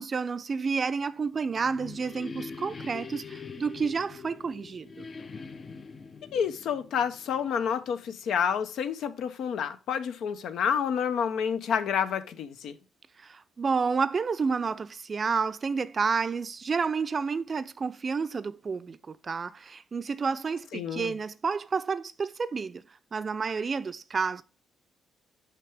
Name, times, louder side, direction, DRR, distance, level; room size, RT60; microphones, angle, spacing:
voice 1, 0.0-5.1 13.2-22.8 23.1-24.4, right 5 dB, 40° right, 0.5 m, -30 dB
Bounced feedback, 1.2-7.9, left 5 dB, 40° left, 0.6 m, -44 dB
voice 2, 6.3-12.8 20.7-21.1, left 7 dB, 75° left, 0.7 m, -29 dB
5.9 x 5.8 x 3.4 m
cardioid pair, 90°, 0 cm